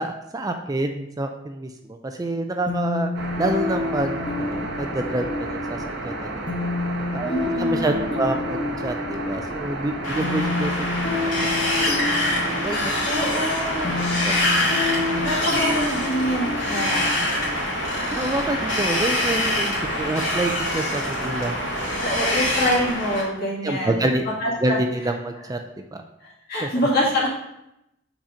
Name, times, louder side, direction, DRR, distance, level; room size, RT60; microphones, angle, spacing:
voice 1, 0.0-3.1 3.4-5.8 6.0-6.5 7.1-10.7 11.1-12.1 12.6-12.9 14.0-14.4 18.1-19.7 20.0-22.0 23.6-24.2 24.6-25.6 26.6-26.7, right 2 dB, 20° right, 5 dB, 0.4 m, -27 dB
sound 1, 2.7-18.2, left 3 dB, 25° left, 1.0 m, -29 dB
sound 2, 3.1-22.9, right 2 dB, 60° right, 1.1 m, -32 dB
voice 2, 7.2-8.2 13.1-14.0 15.2-17.2 22.0-24.0 24.4-24.8 26.5-27.3, equal, 55° left, -4 dB, 2.2 m, -25 dB
Wind, 10.0-23.2, left 1 dB, 70° left, 2.3 m, -25 dB
6.0 x 4.2 x 5.0 m, 0.84 s
head